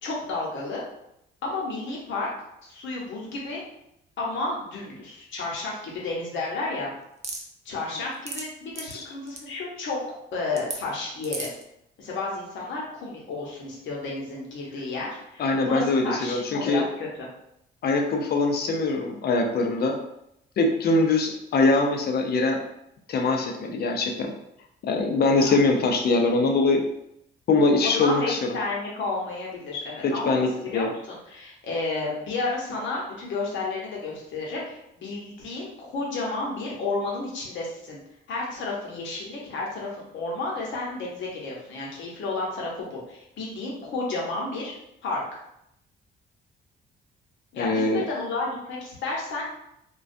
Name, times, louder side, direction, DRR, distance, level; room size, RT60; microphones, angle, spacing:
voice 1, 0.0-0.8 1.4-2.3 2.6-3.6 4.2-6.9 7.6-10.0 10.3-11.5 12.0-17.3 20.8-21.0 25.5-25.6 27.8-38.0 38.3-44.8 45.0-45.4 47.5-49.4, left 3 dB, 70° left, -3 dB, 0.8 m, -31 dB
sound 1, 7.2-7.4 8.0-8.4 8.7-8.9 9.3-9.4 10.6-10.8 11.2-11.6, right 3 dB, 35° right, 0.5 m, -33 dB
voice 2, 15.4-16.8 17.8-20.0 20.6-22.6 23.1-24.3 24.8-26.8 27.5-28.4 30.3-30.9 47.6-48.0, left 3 dB, 55° left, 2 dB, 0.5 m, -23 dB
2.3 x 2.2 x 2.5 m, 0.79 s
cardioid pair, 90°, 20 cm